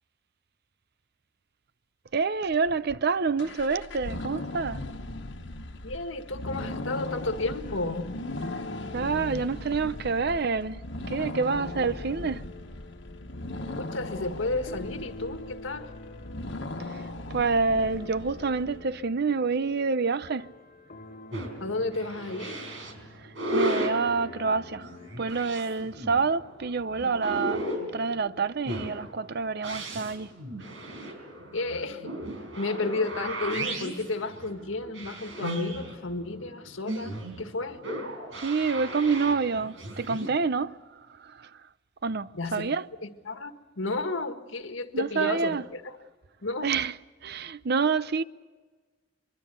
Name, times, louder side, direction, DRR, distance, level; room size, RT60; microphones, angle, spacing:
voice 1, 2.1-4.8 8.9-10.8 11.1-12.4 16.9-17.0 17.3-20.5 23.2-30.3 38.3-40.8 41.1-41.6 42.0-42.9 44.9-45.6 46.6-46.9 47.2-48.2, right 4 dB, 55° right, 0.6 m, -27 dB
sound 1, 3.4-18.8, left 2 dB, 70° left, 1.4 m, -38 dB
voice 2, 5.8-8.1 13.8-15.9 21.6-22.6 31.5-32.1 32.6-37.8 42.3-42.7 43.0-45.9 46.4-46.7, left 3 dB, 90° left, 1.7 m, -32 dB
sound 2, 6.6-26.0, left 2 dB, 45° left, 1.4 m, -47 dB
sound 3, 21.3-40.3, right 1 dB, 85° right, 4.9 m, -35 dB
24.0 x 23.5 x 6.8 m
head